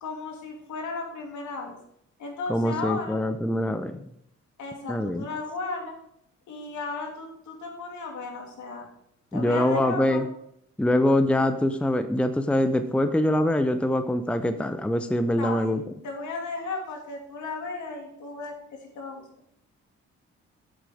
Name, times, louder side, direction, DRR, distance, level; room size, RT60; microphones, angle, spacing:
voice 1, 0.0-1.8 2.2-3.2 4.6-5.9 6.5-8.9 9.3-10.2 15.4-15.8 16.0-19.2, left 3 dB, 70° left, 1 dB, 2.8 m, -35 dB
voice 2, 2.5-4.0 4.9-5.2 9.3-10.3 10.8-15.8, left 1 dB, 5° left, 9 dB, 0.6 m, -24 dB
8.2 x 7.6 x 4.9 m, 0.73 s
cardioid pair, 90°, 30 cm